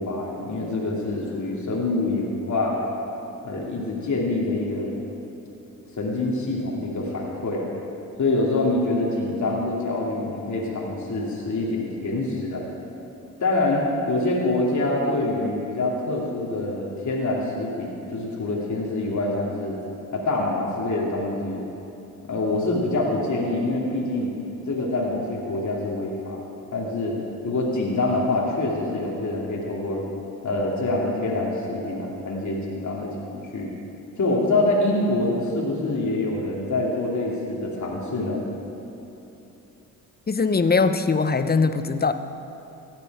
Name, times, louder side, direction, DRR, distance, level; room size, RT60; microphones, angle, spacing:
voice 1, 0.0-2.8 3.4-4.9 6.0-7.7 8.2-12.6 13.4-19.7 20.1-21.6 22.2-24.3 24.7-26.4 26.7-27.2 27.4-30.0 30.4-33.7 34.2-38.4, left 2 dB, 45° left, -4 dB, 2.9 m, -25 dB
voice 2, 40.3-42.1, left 4 dB, 25° left, 11 dB, 0.8 m, -21 dB
16.0 x 10.5 x 4.9 m, 3.0 s
hypercardioid pair, 45°, 41 cm